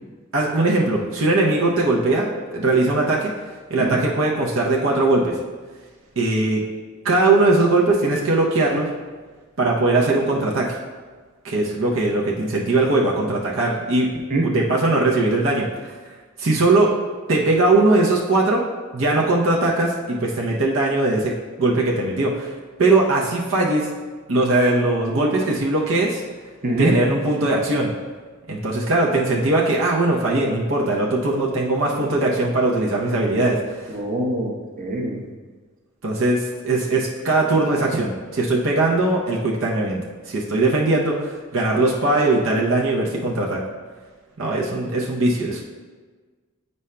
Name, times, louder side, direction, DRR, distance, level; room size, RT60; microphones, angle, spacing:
voice 1, 0.3-3.3 3.7-5.4 6.2-6.6 7.0-8.9 9.6-10.8 11.4-14.1 14.4-15.7 16.4-16.9 17.3-18.6 18.9-21.3 21.6-22.5 22.8-23.9 24.3-26.2 26.8-27.9 28.5-33.9 36.0-40.0 40.3-43.6 44.4-45.6, right 2 dB, 70° right, -3 dB, 0.7 m, -20 dB
voice 2, 26.6-26.9 33.9-34.5 34.8-35.1, right 2 dB, 40° right, -1 dB, 0.9 m, -22 dB
8.3 x 5.3 x 2.2 m, 1.4 s
head